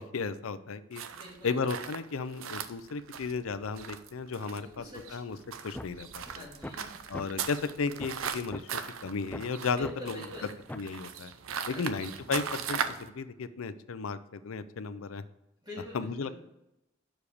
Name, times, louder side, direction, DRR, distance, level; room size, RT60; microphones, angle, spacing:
voice 1, 0.0-1.0 1.4-5.4 5.6-6.5 7.1-10.3 10.7-11.3 11.7-15.2 15.9-16.4, left 4 dB, 75° left, 13 dB, 0.5 m, -34 dB
sound 1, 0.9-13.1, right 7 dB, 70° right, 0.6 m, -39 dB
voice 2, 1.1-1.6 4.5-5.2 6.3-6.9 9.7-10.5 11.7-12.1 15.6-16.4, left 1 dB, 20° right, -4 dB, 2.2 m, -45 dB
sound 2, 5.7-5.9 6.3-6.4 6.6-6.8 7.1-7.2 7.6-7.7 8.0-8.2 8.5-8.6 9.0-9.4 9.8-9.9 10.3-10.4 10.7-10.9, left 1 dB, 10° left, 0.3 m, -40 dB
6.4 x 4.9 x 6.9 m, 0.89 s
head